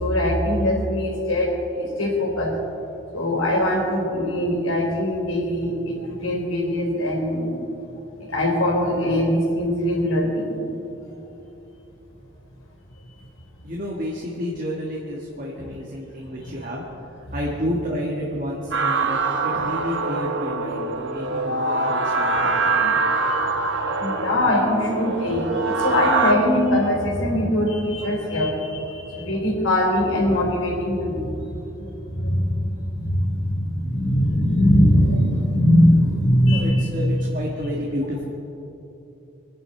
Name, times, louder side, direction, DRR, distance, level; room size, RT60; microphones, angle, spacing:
voice 1, 0.0-2.5 3.1-7.5 8.3-10.6 15.6-15.7 23.3-23.4 24.0-31.4 31.8-37.3, left 1 dB, 85° left, -1 dB, 4.0 m, -21 dB
voice 2, 13.6-16.8 17.1-23.0 36.4-38.2, equal, 40° right, -3 dB, 1.7 m, -30 dB
sound 1, 18.7-26.3, right 3 dB, 65° right, 1.1 m, -24 dB
25.5 x 10.5 x 4.5 m, 3.0 s
head